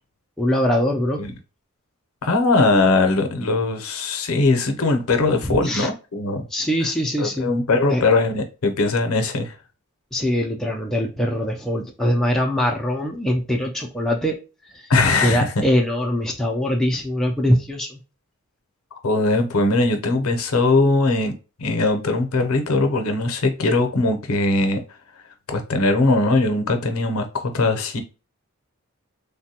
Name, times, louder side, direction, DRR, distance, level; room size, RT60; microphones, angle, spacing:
voice 1, 0.4-1.3 5.4-5.9 6.5-7.5 7.9-8.0 10.1-14.4 14.6-14.9 15.2-18.0, equal, ahead, 0.3 m, -22 dB
voice 2, 2.2-6.5 7.2-9.5 14.9-15.5 19.0-21.3 21.6-24.8 25.5-28.0, left 2 dB, 75° left, 0.6 m, -20 dB
3.3 x 2.2 x 2.7 m
head